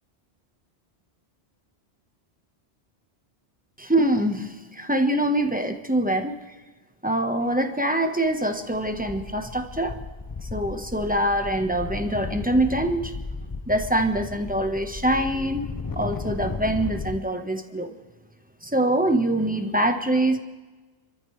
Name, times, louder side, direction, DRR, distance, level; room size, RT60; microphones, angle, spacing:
voice 1, 3.8-6.3 7.0-10.0 10.4-13.1 13.7-17.9 18.6-20.4, right 1 dB, 10° right, 5 dB, 1.2 m, -24 dB
sound 1, 8.3-8.4 8.7-17.2, left 4 dB, 30° left, 0.4 m, -35 dB
30.0 x 14.0 x 3.3 m, 1.3 s
omnidirectional pair, 1.1 m